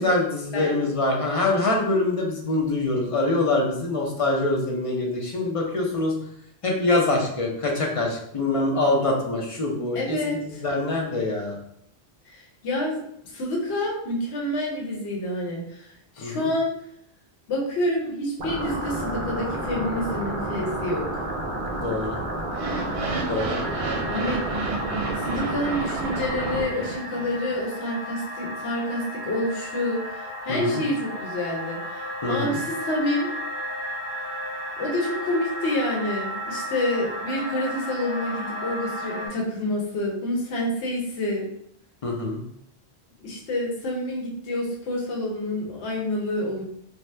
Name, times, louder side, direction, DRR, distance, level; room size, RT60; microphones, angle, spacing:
voice 1, 0.0-6.3 6.6-11.6 16.2-16.5 21.8-22.2 23.3-23.6 30.5-30.8 32.2-32.6 42.0-42.4, left 2 dB, 45° left, -1 dB, 0.4 m, -24 dB
voice 2, 0.5-0.9 9.9-10.6 12.3-16.7 17.5-21.0 24.1-24.4 25.2-33.3 34.8-41.5 43.2-46.6, left 1 dB, 75° left, -2 dB, 1.0 m, -28 dB
sound 1, 18.4-26.7, right 1 dB, 60° right, 0.6 m, -30 dB
sound 2, 22.5-27.6, right 4 dB, 90° right, 0.9 m, -32 dB
sound 3, 23.6-39.3, equal, 15° left, 1.0 m, -34 dB
2.8 x 2.1 x 3.2 m, 0.71 s
omnidirectional pair, 1.1 m